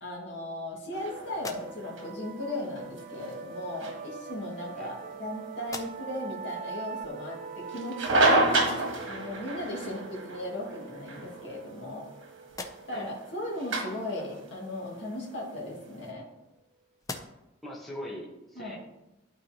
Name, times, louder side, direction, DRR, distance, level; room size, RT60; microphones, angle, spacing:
voice 1, 0.0-8.8 9.1-12.1 12.9-16.3 18.6-18.8, left 1 dB, 65° left, -3 dB, 2.0 m, -37 dB
sound 1, 0.9-16.1, right 2 dB, 90° right, 1.4 m, -32 dB
sound 2, 1.1-16.4, right 6 dB, 50° right, 0.3 m, -44 dB
sound 3, 1.3-2.2 3.3-3.4 4.4-5.3 5.6-6.3 6.8-6.9 9.6-9.7 10.1-10.8 11.4-12.1 12.4-13.2 15.2-16.6 17.0-17.7, left 3 dB, 15° left, 0.5 m, -45 dB
voice 2, 17.6-18.8, equal, ahead, -5 dB, 1.2 m, -41 dB
12.0 x 4.1 x 2.9 m, 0.92 s
head